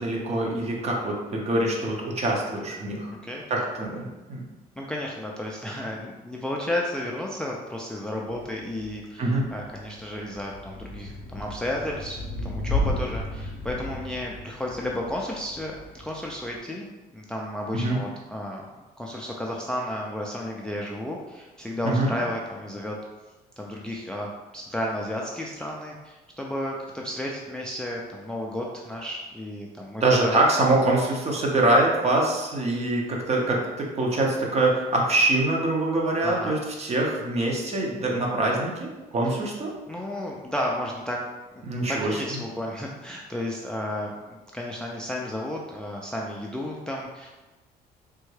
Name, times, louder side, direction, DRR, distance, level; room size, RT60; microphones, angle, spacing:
voice 1, 0.0-3.1 3.5-4.4 9.2-9.4 17.7-18.0 21.8-22.1 30.0-39.7 41.6-42.1, right 2 dB, 40° right, -1 dB, 0.8 m, -24 dB
voice 2, 3.1-3.4 4.8-16.9 17.1-18.7 19.0-23.0 23.6-30.4 36.2-36.6 39.9-41.2 41.5-47.3, left 1 dB, 5° left, -2 dB, 0.3 m, -33 dB
Thunder / Rain, 8.3-16.6, left 1 dB, 60° left, 0.6 m, -34 dB
3.4 x 2.2 x 3.2 m, 1.1 s
cardioid pair, 110°, 17 cm